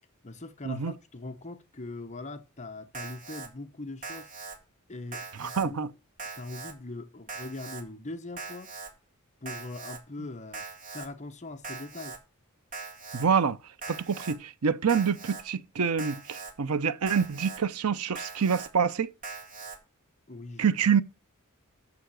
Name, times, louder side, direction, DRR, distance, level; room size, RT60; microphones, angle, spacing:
voice 1, 0.2-4.3 4.9-5.9 6.4-8.8 9.4-10.7 10.9-12.2 20.3-20.7, left 2 dB, 30° left, 1.0 m, -41 dB
Alarm, 2.9-3.5 4.0-4.6 5.1-5.7 6.2-6.7 7.3-7.8 8.4-8.9 9.5-10.0 10.5-11.1 11.6-12.2 12.7-13.3 13.8-14.4 14.9-15.4 16.0-16.5 17.1-17.6 18.2-18.7 19.2-19.8, right 4 dB, 40° right, 2.0 m, -41 dB
voice 2, 5.4-5.9 13.1-13.6 13.9-19.1 20.6-21.0, right 6 dB, 85° right, 0.7 m, -26 dB
6.9 x 6.9 x 6.3 m
head